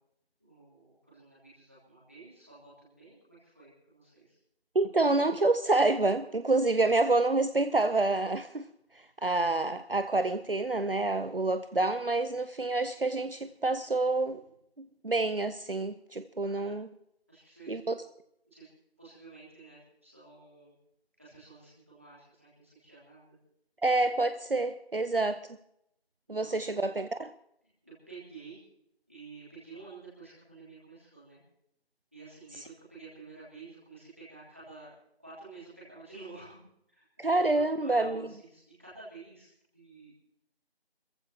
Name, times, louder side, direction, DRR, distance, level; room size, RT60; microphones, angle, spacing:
voice 1, 0.4-4.4 16.4-16.8 17.3-17.7 18.4-18.7 19.0-20.7 21.2-23.4 26.3-26.8 27.0-27.2 27.8-28.6 29.1-31.4 32.1-34.9 35.2-40.1, right 3 dB, 15° right, -9 dB, 3.1 m, -50 dB
voice 2, 4.7-8.6 9.2-14.4 15.0-16.9 17.7-17.9 23.8-25.4 26.3-27.3 37.2-38.2, right 2 dB, 60° right, 11 dB, 0.7 m, -27 dB
28.0 x 14.5 x 2.9 m, 0.76 s
figure-of-eight pair, 180°, 32 cm